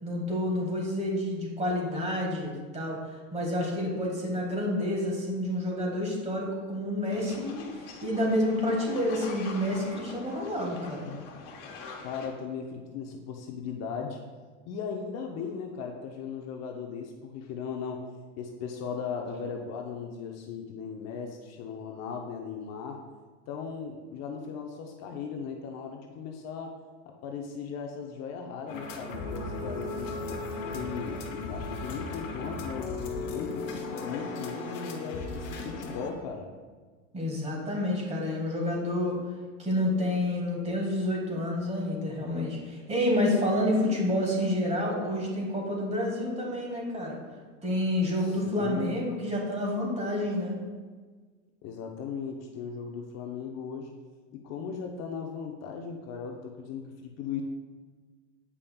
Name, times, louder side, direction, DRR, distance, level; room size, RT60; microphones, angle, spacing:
voice 1, 0.0-3.0 3.3-7.7 8.0-11.1 37.1-39.2 39.6-47.2 47.6-50.6, left 1 dB, 20° right, -1 dB, 1.8 m, -29 dB
sound 1, 7.1-12.3, left 4 dB, 65° left, 1.3 m, -44 dB
voice 2, 12.0-14.2 14.7-18.1 18.4-23.0 23.5-26.8 27.1-30.2 30.5-33.7 34.0-36.5 47.6-47.7 48.2-49.0 51.6-53.9 54.3-57.4, left 6 dB, 45° left, 2 dB, 0.7 m, -37 dB
sound 2, 28.7-36.1, left 3 dB, 85° left, 1.1 m, -36 dB
8.3 x 5.2 x 2.3 m, 1.4 s
hypercardioid pair, 105°, 36 cm